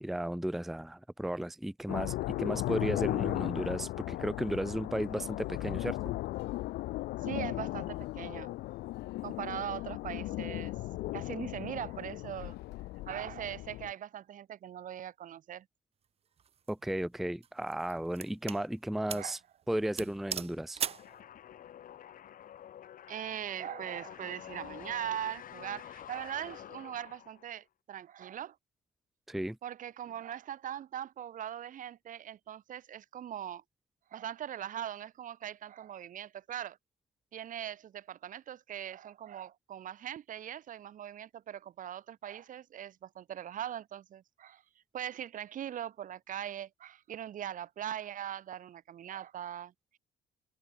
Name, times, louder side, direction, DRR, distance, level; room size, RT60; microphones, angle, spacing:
voice 1, 0.0-6.0 16.7-19.4 19.7-20.8 29.3-29.6, right 1 dB, ahead, 0.6 m, -34 dB
sound 1, 1.9-13.9, left 18 dB, 75° left, 0.7 m, -36 dB
voice 2, 7.2-8.5 9.2-10.7 11.1-12.6 13.0-15.7 19.1-19.4 20.8-21.2 23.1-28.6 29.6-33.6 34.1-36.8 37.3-44.6 44.9-50.0, right 10 dB, 50° right, 1.2 m, -41 dB
sound 2, 16.4-16.7 17.4-18.6 19.1-19.3 19.6-19.7 20.0-21.1, right 8 dB, 35° right, 0.8 m, -38 dB
sound 3, 20.8-27.6, left 10 dB, 55° left, 2.0 m, -49 dB
cardioid pair, 110°, 17 cm